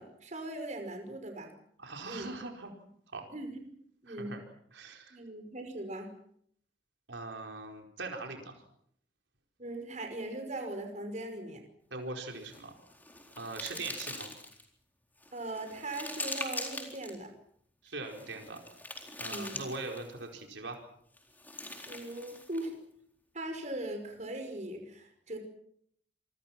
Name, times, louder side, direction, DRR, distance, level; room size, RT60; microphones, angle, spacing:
voice 1, 0.0-1.5 2.0-2.3 3.3-3.7 4.0-4.3 5.1-6.1 9.6-11.6 13.7-13.8 15.3-17.3 19.2-19.6 21.9-22.7 23.3-25.4, right 1 dB, 40° right, 5 dB, 5.4 m, -40 dB
voice 2, 1.8-2.7 3.1-3.3 4.1-4.4 4.7-5.2 7.1-8.6 11.9-12.7 13.3-14.3 17.8-18.6 19.2-20.8, right 3 dB, 80° right, 2 dB, 4.7 m, -41 dB
sound 1, 12.4-14.7 15.2-17.2 18.0-20.2 21.2-22.7, left 2 dB, 10° left, 4.1 m, -42 dB
27.5 x 24.0 x 6.1 m, 0.68 s
head